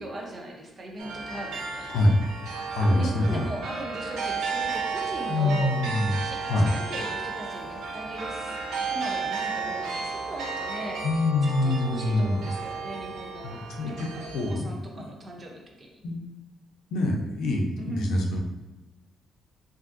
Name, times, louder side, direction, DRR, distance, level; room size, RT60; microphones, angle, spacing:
voice 1, 0.0-2.0 2.8-5.7 6.2-11.2 11.6-16.0 17.8-18.1, right 1 dB, 35° right, 0 dB, 0.6 m, -39 dB
sound 1, 1.0-14.5, right 4 dB, 85° right, 0.6 m, -33 dB
voice 2, 2.7-3.5 5.3-6.1 6.5-6.7 11.0-12.4 13.4-14.1 14.3-15.0 16.0-16.2 16.9-18.4, left 2 dB, 80° left, 1 dB, 0.5 m, -25 dB
3.4 x 2.5 x 2.5 m, 1.1 s
cardioid pair, 115°, 0 cm